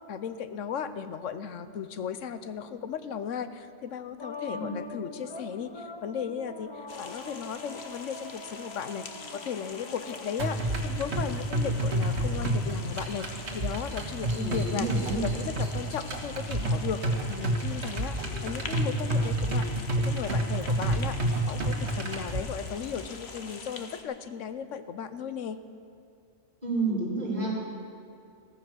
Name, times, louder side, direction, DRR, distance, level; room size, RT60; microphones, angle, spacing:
voice 1, 0.1-6.7 7.0-14.9 15.1-19.6 20.0-25.6, left 7 dB, 85° left, 11 dB, 1.2 m, -36 dB
sound 1, 4.2-10.5, left 3 dB, 25° left, 0.7 m, -43 dB
sound 2, 6.9-24.0, left 4 dB, 60° left, 1.4 m, -44 dB
sound 3, 10.4-22.4, right 1 dB, 60° right, 1.9 m, -29 dB
voice 2, 14.3-15.2 18.2-18.3 26.6-27.7, right 3 dB, 35° right, -5 dB, 4.8 m, -31 dB
15.0 x 14.5 x 6.2 m, 2.5 s
omnidirectional pair, 1.3 m